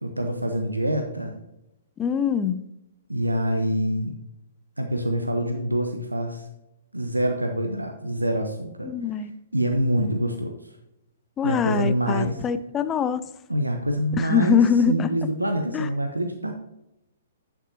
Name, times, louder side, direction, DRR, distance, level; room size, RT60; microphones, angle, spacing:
voice 1, 0.0-1.3 3.1-4.1 4.8-6.5 6.9-8.9 9.5-10.6 11.4-12.4 13.5-16.5, right 1 dB, 90° right, 5 dB, 0.8 m, -25 dB
voice 2, 2.0-2.6 8.8-9.3 11.4-13.2 14.1-15.1 15.7-15.9, left 7 dB, 20° left, 12 dB, 0.5 m, -23 dB
10.5 x 6.0 x 2.8 m, 0.87 s
figure-of-eight pair, 120°, 0 cm